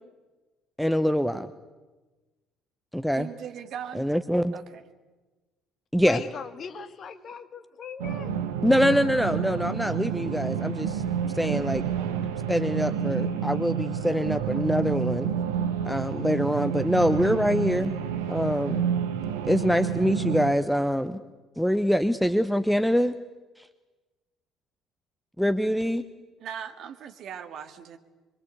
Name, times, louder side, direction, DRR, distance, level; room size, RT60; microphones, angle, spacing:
voice 1, 0.8-1.5 2.9-3.3 3.9-4.5 5.9-6.2 8.6-11.0 11.3-11.8 12.5-15.3 15.8-18.0 18.3-18.8 19.4-21.2 21.6-23.1 23.6-23.7 25.4-26.0, equal, ahead, 12 dB, 1.0 m, -24 dB
voice 2, 3.2-4.1 4.5-4.6 26.4-28.0, right 8 dB, 50° right, 7 dB, 2.1 m, -39 dB
voice 3, 6.0-8.4 12.6-12.9 14.5-14.7, left 6 dB, 45° left, 9 dB, 2.0 m, -39 dB
sound 1, 8.0-20.5, right 8 dB, 70° right, 1.4 m, -29 dB
26.5 x 23.5 x 8.2 m, 1.2 s
figure-of-eight pair, 50°, 0 cm